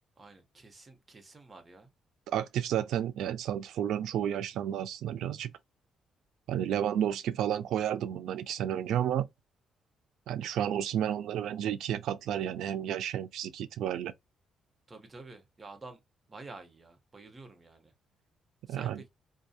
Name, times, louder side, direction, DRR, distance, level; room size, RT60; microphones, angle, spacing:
voice 1, 0.2-1.9 14.9-16.0 16.3-17.9 18.7-19.1, right 3 dB, 30° right, 0.9 m, -49 dB
voice 2, 2.3-5.5 6.5-9.3 10.3-14.1 18.7-19.0, right 10 dB, 80° right, 0.3 m, -31 dB
2.7 x 2.3 x 2.3 m
cardioid pair, 90°, 0 cm